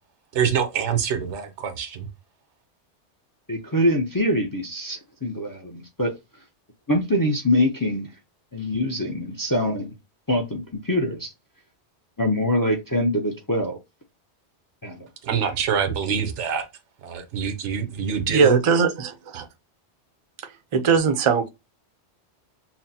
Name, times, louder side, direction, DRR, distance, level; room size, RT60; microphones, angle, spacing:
voice 1, 0.3-2.1 15.2-16.7 17.0-18.6 19.3-19.4, right 7 dB, 80° right, 1.0 m, -25 dB
voice 2, 3.5-6.1 6.9-8.1 8.5-9.9 10.3-11.3 12.2-13.8 14.8-15.1 16.1-16.2, left 1 dB, 25° left, 0.5 m, -24 dB
voice 3, 18.3-19.5 20.7-21.5, right 5 dB, 40° right, 0.5 m, -20 dB
5.8 x 2.0 x 2.7 m
omnidirectional pair, 1.2 m